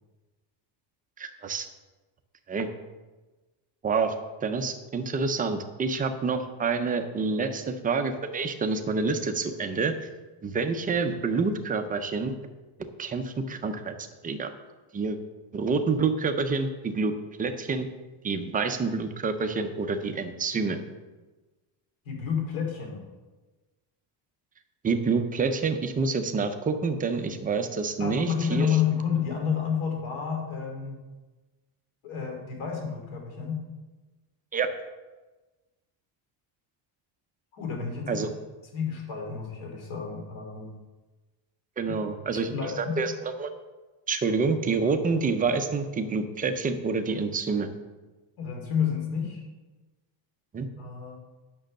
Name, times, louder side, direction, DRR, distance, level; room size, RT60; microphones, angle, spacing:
voice 1, 1.2-1.7 2.5-2.7 3.8-4.1 4.4-10.1 10.4-12.3 13.0-13.9 14.2-14.5 14.9-15.2 15.5-17.1 17.4-17.9 18.2-20.8 24.8-28.7 34.5-34.7 38.1-38.3 41.8-43.5 44.1-47.7 50.5-50.7, right 4 dB, 20° right, 7 dB, 0.3 m, -27 dB
voice 2, 22.0-23.0 28.0-30.9 32.0-33.6 37.5-38.2 38.7-40.7 42.5-43.0 48.4-49.4 50.8-51.2, left 7 dB, 70° left, 1 dB, 3.0 m, -30 dB
8.9 x 6.1 x 6.4 m, 1.2 s
cardioid pair, 175°, 50 cm